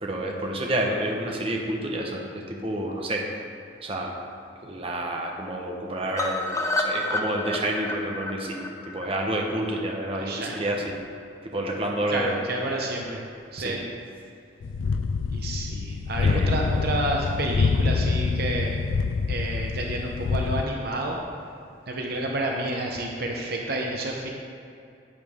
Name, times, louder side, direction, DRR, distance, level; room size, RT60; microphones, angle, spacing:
voice 1, 0.0-3.3 3.8-4.2 4.6-11.0 11.4-12.4 13.6-13.8 16.2-16.6, right 1 dB, 30° right, 0 dB, 1.1 m, -29 dB
sound 1, 6.2-10.2 10.5-10.6 10.9-11.0 11.3-11.4, left 2 dB, 15° left, 0.6 m, -30 dB
voice 2, 10.2-10.7 12.1-13.2 13.5-13.8 15.3-18.8 19.3-21.2 21.9-24.3, right 1 dB, 50° right, 0 dB, 0.9 m, -30 dB
sound 2, 14.6-20.7, left 4 dB, 80° left, 0.4 m, -26 dB
11.5 x 8.7 x 3.7 m, 2.6 s
head